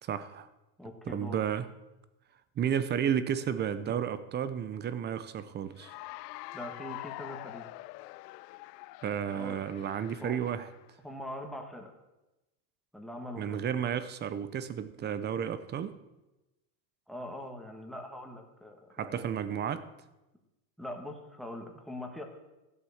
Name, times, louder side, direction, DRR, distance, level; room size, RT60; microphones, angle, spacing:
voice 1, 0.0-0.5 1.1-1.7 2.6-5.9 9.0-10.7 13.4-16.0 19.0-19.9, right 8 dB, 20° right, 14 dB, 0.6 m, -32 dB
voice 2, 0.8-1.4 6.5-7.7 9.3-9.6 10.2-10.4 11.0-11.9 12.9-13.6 17.1-19.4 20.8-22.2, left 1 dB, ahead, 2 dB, 1.6 m, -42 dB
Cheering / Applause, 5.7-10.9, left 20 dB, 85° left, 0.6 m, -45 dB
15.0 x 8.2 x 7.1 m, 1.0 s
supercardioid pair, 150°, 47 cm